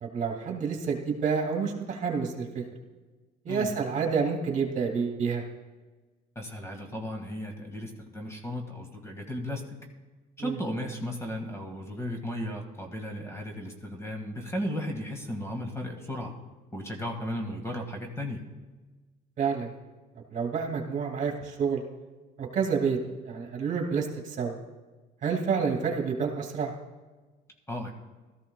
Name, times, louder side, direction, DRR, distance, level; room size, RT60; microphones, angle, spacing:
voice 1, 0.0-2.6 3.4-5.4 10.4-10.6 19.4-19.7 20.3-21.8 22.4-23.0 23.2-24.5 25.2-26.7, right 6 dB, 50° right, 1 dB, 2.2 m, -29 dB
voice 2, 6.4-9.6 10.4-16.3 16.7-18.4 27.7-27.9, equal, 15° left, 3 dB, 1.8 m, -35 dB
17.0 x 13.5 x 2.3 m, 1.2 s
cardioid pair, 110°, 17 cm